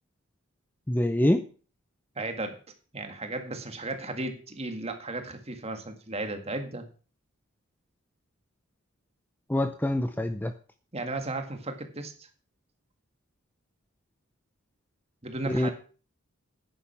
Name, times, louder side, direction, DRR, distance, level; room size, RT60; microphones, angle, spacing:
voice 1, 0.9-1.4 9.5-10.5 15.5-15.7, left 1 dB, 10° left, 8 dB, 0.6 m, -25 dB
voice 2, 2.2-2.6 2.9-6.9 10.9-12.3 15.2-15.7, right 2 dB, 30° right, 6 dB, 1.9 m, -35 dB
10.0 x 10.0 x 5.9 m, 0.39 s
head